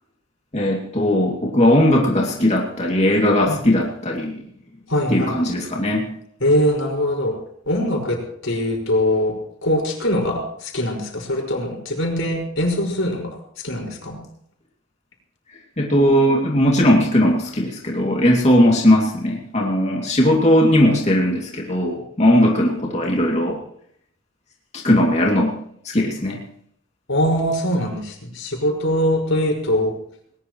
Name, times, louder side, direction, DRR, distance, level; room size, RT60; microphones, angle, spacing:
voice 1, 0.5-4.4 5.1-6.1 15.8-23.6 24.7-25.5 25.8-26.4, left 1 dB, 35° left, -2 dB, 2.6 m, -18 dB
voice 2, 4.9-5.3 6.4-7.3 7.7-9.3 9.6-14.2 27.1-29.9, equal, 85° left, 1 dB, 5.5 m, -22 dB
20.0 x 20.0 x 3.2 m, 0.69 s
head